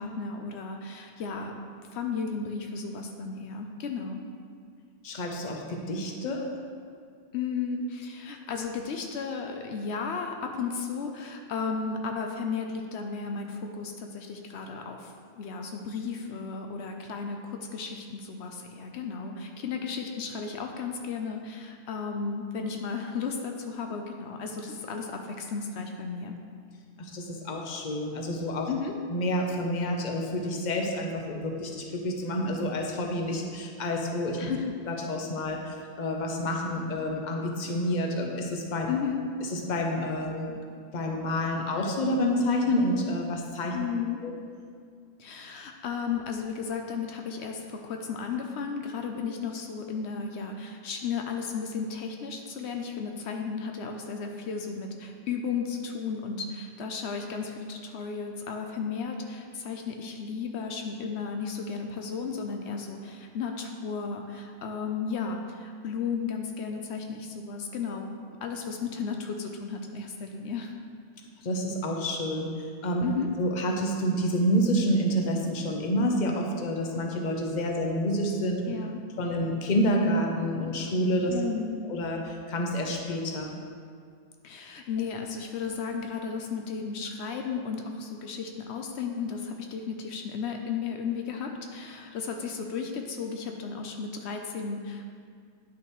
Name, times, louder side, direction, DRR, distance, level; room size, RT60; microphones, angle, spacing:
voice 1, 0.0-1.6 1.9-4.2 7.3-26.3 28.7-28.9 34.4-34.7 38.9-39.2 43.7-44.2 45.2-70.7 73.0-73.3 78.6-79.0 81.3-81.8 84.4-95.0, left 5 dB, 80° left, 3 dB, 0.9 m, -34 dB
voice 2, 5.0-6.4 27.0-28.7 29.1-34.5 34.9-38.9 39.5-40.5 40.9-43.7 44.2-44.3 71.4-72.5 72.8-73.0 73.4-78.6 79.2-81.5 81.9-83.5, equal, 45° left, 1 dB, 0.9 m, -28 dB
10.0 x 6.0 x 3.1 m, 2.1 s
omnidirectional pair, 1.1 m